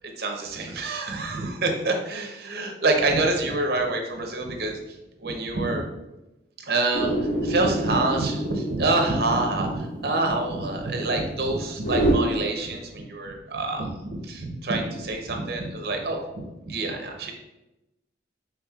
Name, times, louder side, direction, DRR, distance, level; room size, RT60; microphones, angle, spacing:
voice 1, 0.2-4.8 5.2-5.8 6.7-16.2 16.6-17.3, right 2 dB, 60° right, 3 dB, 0.7 m, -26 dB
sound 1, 6.9-12.1, right 1 dB, 80° left, 1.4 m, -28 dB
5.9 x 3.4 x 2.3 m, 0.97 s
head